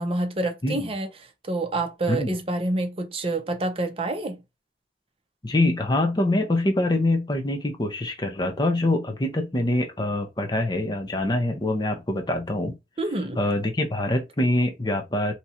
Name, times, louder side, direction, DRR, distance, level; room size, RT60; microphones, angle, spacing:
voice 1, 0.0-4.4 13.0-13.4, right 2 dB, 35° right, 0.6 m, -28 dB
voice 2, 5.4-12.8 13.4-15.3, left 1 dB, 25° left, 0.6 m, -24 dB
2.9 x 2.4 x 4.2 m
head